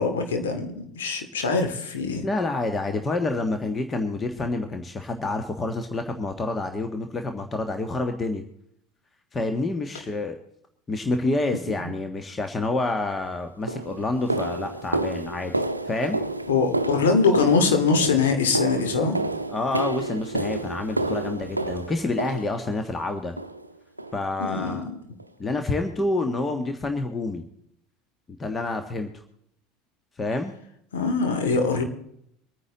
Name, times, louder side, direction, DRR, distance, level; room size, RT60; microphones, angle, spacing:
voice 1, 0.0-2.3 11.8-11.9 16.5-19.2 24.4-24.8 30.9-31.8, left 4 dB, 70° left, 5 dB, 2.5 m, -23 dB
voice 2, 2.2-8.4 9.3-10.4 10.9-15.5 15.9-16.2 19.5-23.3 24.1-24.8 25.4-27.4 28.4-29.1 30.2-30.6, left 2 dB, 20° left, 6 dB, 1.4 m, -28 dB
sound 1, 13.0-13.1 13.7-22.9 23.4-23.7 24.0-24.2 24.6-24.8 25.2-25.3 25.8-25.9, right 2 dB, 90° right, 0.6 m, -30 dB
24.0 x 9.7 x 3.9 m, 0.72 s
figure-of-eight pair, 70°, 0 cm